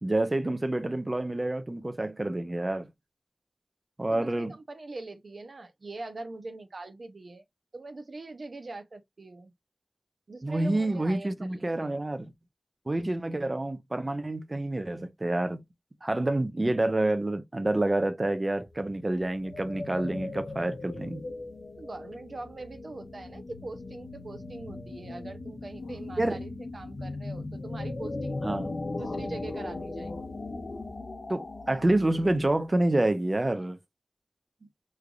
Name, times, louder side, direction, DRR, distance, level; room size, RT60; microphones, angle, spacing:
voice 1, 0.0-2.9 4.0-4.6 10.4-12.3 12.9-15.6 16.0-21.2 26.2-26.4 28.4-28.7 31.3-33.8, right 1 dB, 40° right, 0.6 m, -28 dB
voice 2, 4.1-7.4 7.7-9.5 10.3-12.0 21.8-28.4 29.0-30.1 34.6-34.7, right 2 dB, 85° right, 0.6 m, -42 dB
sound 1, 18.6-32.8, left 2 dB, 85° left, 0.8 m, -38 dB
3.8 x 3.2 x 2.2 m
wide cardioid pair, 50°, 0 cm